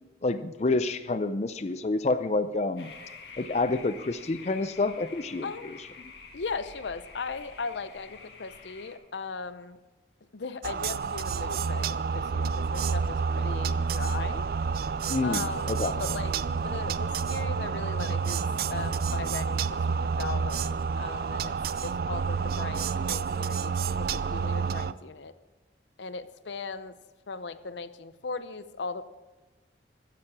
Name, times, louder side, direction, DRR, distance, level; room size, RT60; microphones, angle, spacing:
voice 1, 0.2-2.9 3.4-5.7 15.1-15.9, left 3 dB, 40° left, 11 dB, 0.4 m, -28 dB
sound 1, 2.8-9.0, left 4 dB, 70° left, 1.9 m, -48 dB
voice 2, 6.3-9.8 10.3-14.5 15.2-21.5 21.8-25.3 26.0-27.0 27.3-29.0, left 4 dB, 85° left, 13 dB, 0.7 m, -38 dB
sound 2, 10.6-24.9, right 5 dB, 55° right, 0.4 m, -29 dB
14.5 x 9.9 x 4.8 m, 1.2 s
head